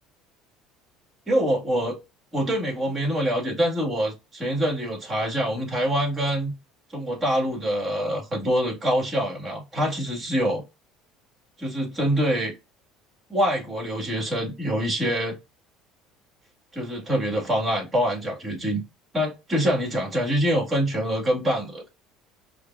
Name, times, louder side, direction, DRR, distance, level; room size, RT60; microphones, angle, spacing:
voice 1, 1.3-2.0 2.3-6.5 6.9-10.6 11.6-12.5 13.3-15.4 16.7-18.8 19.1-21.8, equal, 25° right, 2.0 m, -25 dB
5.0 x 2.3 x 2.6 m
supercardioid pair, 100°, 0 cm